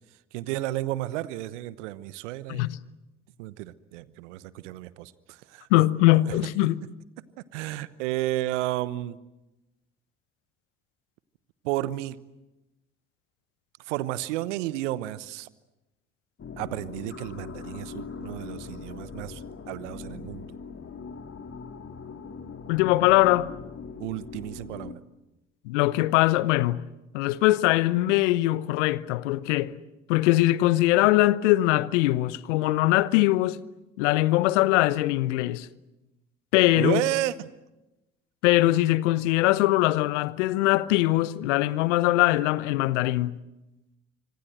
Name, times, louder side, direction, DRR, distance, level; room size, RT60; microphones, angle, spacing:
voice 1, 0.3-2.7 3.4-5.1 5.5-5.8 6.3-6.4 7.5-9.2 11.6-12.2 13.9-15.5 16.6-19.4 19.7-20.5 24.0-25.0 36.8-37.5, right 15 dB, 80° right, 1.0 m, -32 dB
voice 2, 5.7-6.8 22.7-23.5 25.6-26.8 27.1-29.8 30.1-33.6 34.0-35.7 36.5-37.0 38.4-43.3, left 17 dB, 75° left, 0.9 m, -22 dB
sound 1, 16.4-25.0, left 5 dB, 40° left, 2.4 m, -41 dB
25.5 x 25.5 x 7.9 m
hypercardioid pair, 50°, 36 cm